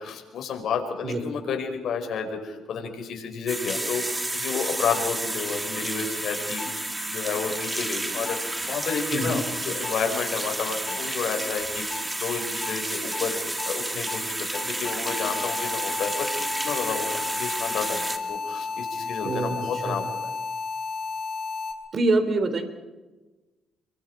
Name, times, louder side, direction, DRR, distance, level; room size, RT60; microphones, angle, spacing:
voice 1, 0.0-16.3 16.6-20.2, left 6 dB, 70° left, 3 dB, 5.5 m, -31 dB
sound 1, 3.5-18.2, right 1 dB, 15° right, 2.5 m, -31 dB
sound 2, 4.9-5.0 6.6-6.7 8.3-8.4 9.8-9.9 10.9-11.0 11.9-12.0 12.6-12.7 13.1-13.2 13.6-13.7 14.1-14.2 14.5-21.7, left 4 dB, 45° left, 5.6 m, -32 dB
voice 2, 19.2-20.0 21.9-22.7, right 2 dB, 50° right, 9 dB, 3.3 m, -25 dB
29.5 x 24.0 x 4.9 m, 1.2 s
cardioid pair, 90°, 0 cm